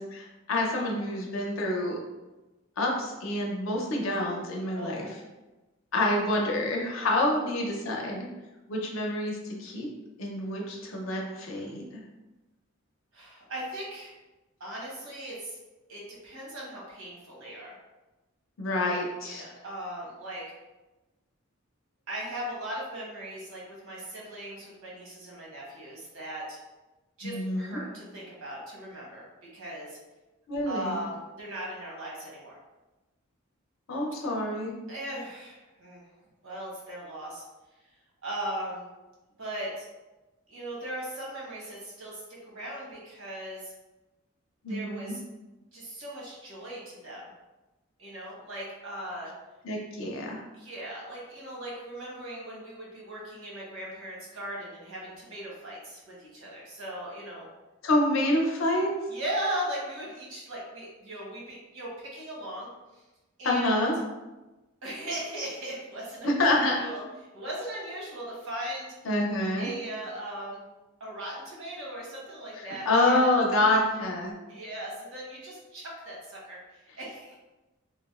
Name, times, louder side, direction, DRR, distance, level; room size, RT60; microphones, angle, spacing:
voice 1, 0.0-2.0 2.8-5.1 5.9-8.3 8.7-9.9 10.2-12.0 18.6-19.4 27.2-27.8 30.5-31.0 33.9-34.7 44.6-45.1 49.6-50.4 57.8-58.9 63.4-64.0 66.2-66.8 69.0-69.7 72.6-74.4, left 1 dB, 75° left, 0 dB, 0.6 m, -27 dB
voice 2, 4.7-5.1 13.1-14.1 14.6-15.6 15.9-17.8 19.2-20.4 22.1-26.6 27.2-30.0 30.6-32.6 34.9-36.0 36.4-37.4 38.2-38.8 39.4-39.8 40.5-43.7 44.7-45.2 45.7-47.2 48.0-49.3 50.5-57.5 59.1-62.7 63.4-63.9 64.8-66.3 66.8-67.0 67.3-68.9 69.6-70.6 71.0-73.3 74.5-77.3, right 1 dB, 85° right, -4 dB, 1.0 m, -38 dB
3.3 x 2.0 x 2.3 m, 1.1 s
head